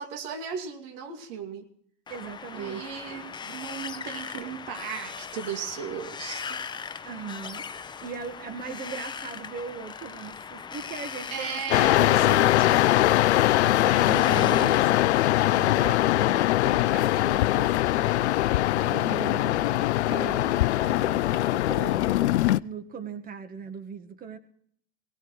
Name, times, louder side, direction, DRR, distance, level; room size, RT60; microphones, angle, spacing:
voice 1, 0.0-1.7 2.5-6.6 11.3-12.8 14.1-14.8, right 7 dB, 55° right, 5 dB, 2.6 m, -36 dB
Wind, 2.1-15.2, left 6 dB, 15° left, 0.7 m, -39 dB
voice 2, 2.1-2.8 7.0-7.6 8.0-11.6 12.0-12.8 13.8-15.0 15.5-22.2 22.6-24.4, right 6 dB, 25° right, 9 dB, 1.5 m, -39 dB
sound 1, 11.7-22.6, left 15 dB, 75° left, 0.5 m, -22 dB
22.0 x 18.0 x 3.2 m, 0.63 s
hypercardioid pair, 105°, 34 cm